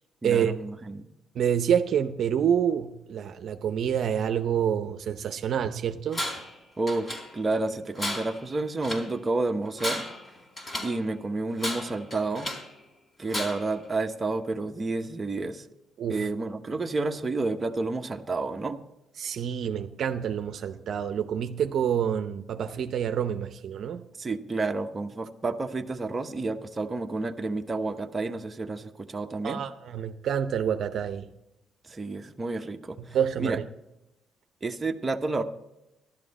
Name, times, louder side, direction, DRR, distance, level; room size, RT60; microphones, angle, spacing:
voice 1, 0.2-1.1 6.8-10.1 10.8-12.5 13.2-15.7 16.1-18.8 24.2-29.6 31.8-33.6 34.6-35.4, right 3 dB, 25° right, 5 dB, 1.0 m, -30 dB
voice 2, 1.3-6.2 16.0-16.3 19.2-24.0 29.4-31.3 33.0-33.6, right 8 dB, 65° right, 7 dB, 0.7 m, -27 dB
Tools, 6.1-6.6 6.9-7.6 8.0-9.1 9.6-11.0 11.6-12.7 13.3-13.8, left 1 dB, 30° left, 4.0 m, -34 dB
13.5 x 12.0 x 4.2 m, 0.92 s
cardioid pair, 90°, 0 cm